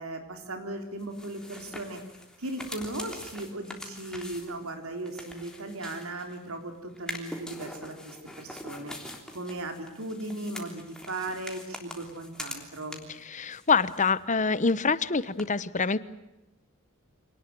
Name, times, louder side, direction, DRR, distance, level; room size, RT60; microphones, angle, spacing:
voice 1, 0.0-2.0 2.4-8.9 9.3-13.1, right 2 dB, 80° right, 5 dB, 4.2 m, -37 dB
sound 1, 1.0-6.5 7.0-13.2 13.5-14.4 14.6-14.7 15.4-15.5, left 1 dB, 5° left, 3.3 m, -43 dB
voice 2, 13.3-16.0, left 4 dB, 35° left, 16 dB, 1.0 m, -25 dB
26.5 x 19.0 x 9.3 m, 0.95 s
head